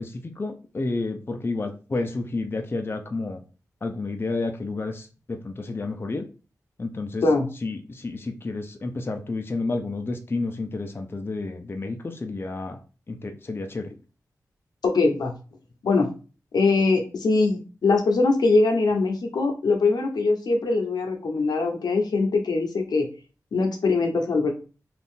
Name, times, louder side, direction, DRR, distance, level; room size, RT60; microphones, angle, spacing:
voice 1, 0.0-3.4 3.8-6.2 6.8-7.2 7.6-12.8 13.1-13.9, left 3 dB, 35° left, 5 dB, 0.5 m, -30 dB
voice 2, 14.8-15.3 15.8-16.1 16.5-23.1 23.5-24.5, left 3 dB, 85° left, 3 dB, 0.7 m, -22 dB
2.6 x 2.4 x 3.6 m, 0.34 s
cardioid pair, 65°, 7 cm